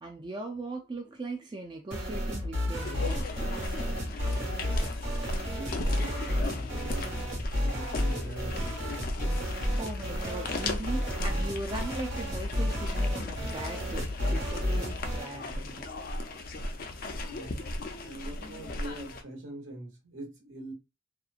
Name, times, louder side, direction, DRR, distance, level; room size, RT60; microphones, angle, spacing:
voice 1, 0.0-3.5 9.8-15.9, right 2 dB, 20° right, 0.3 m, -39 dB
sound 1, 1.9-15.3, left 1 dB, 65° right, 1.3 m, -32 dB
sound 2, 2.8-19.2, left 2 dB, 45° left, 0.4 m, -37 dB
voice 2, 4.3-4.7 5.5-8.8 17.2-17.6 18.0-20.7, right 1 dB, 80° right, 1.2 m, -43 dB
2.9 x 2.3 x 2.4 m
head